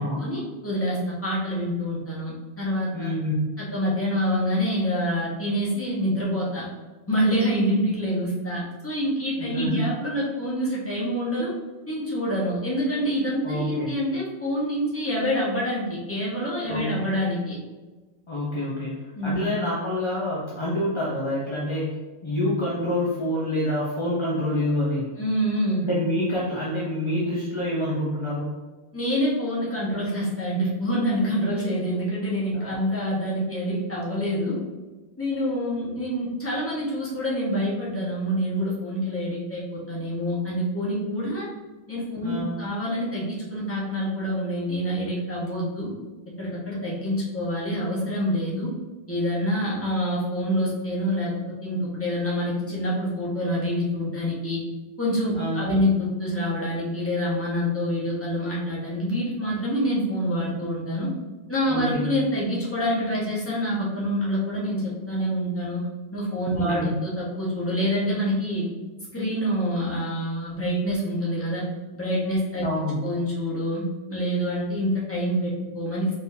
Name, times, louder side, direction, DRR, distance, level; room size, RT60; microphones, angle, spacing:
voice 1, 0.2-3.1 3.6-6.7 7.1-11.5 11.9-17.6 19.1-19.4 25.2-25.8 28.9-34.6 35.2-41.5 41.9-45.9 46.4-48.7 49.1-51.3 51.6-54.6 55.0-61.1 61.5-65.8 66.1-68.7 69.1-71.6 71.9-72.7 73.0-73.8 74.1-76.1, equal, 10° left, -6 dB, 1.1 m, -26 dB
voice 2, 2.9-3.5 9.4-9.8 13.4-13.9 16.7-17.1 18.3-22.0 22.2-25.2 25.8-28.5 32.5-32.8 42.2-42.6 55.3-55.7 61.7-62.1 66.5-66.9 72.6-73.0, left 1 dB, 30° left, -6 dB, 0.5 m, -27 dB
4.1 x 3.6 x 2.7 m, 1.2 s
omnidirectional pair, 1.3 m